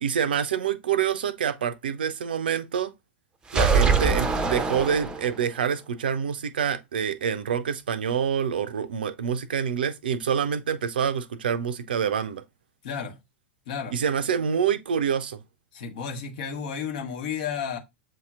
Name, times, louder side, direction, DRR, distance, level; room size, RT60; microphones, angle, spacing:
voice 1, 0.0-2.9 3.5-12.4 13.9-15.4, right 7 dB, 65° right, 0.5 m, -26 dB
sound 1, 3.5-5.6, right 5 dB, 15° right, 0.6 m, -23 dB
voice 2, 12.8-13.2 13.7-13.9 15.7-17.8, left 7 dB, 55° left, 1.0 m, -32 dB
7.5 x 2.8 x 2.3 m
figure-of-eight pair, 90°, 6 cm